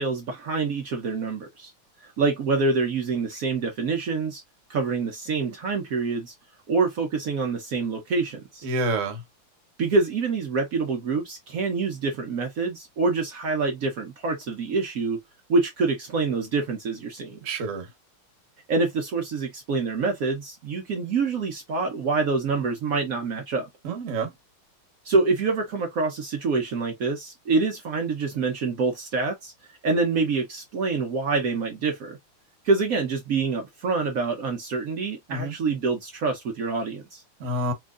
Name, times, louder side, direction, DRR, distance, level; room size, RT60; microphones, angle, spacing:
voice 1, 0.0-1.7 2.0-4.4 4.7-6.3 6.7-8.7 9.8-15.2 15.5-17.4 18.7-23.7 25.0-29.5 29.8-32.2 32.6-37.2, right 4 dB, 75° right, 0.7 m, -26 dB
voice 2, 8.6-9.2 17.4-17.9 23.8-24.3 35.3-35.5 37.4-37.7, right 2 dB, 50° right, 1.0 m, -28 dB
4.4 x 2.5 x 2.3 m
omnidirectional pair, 2.3 m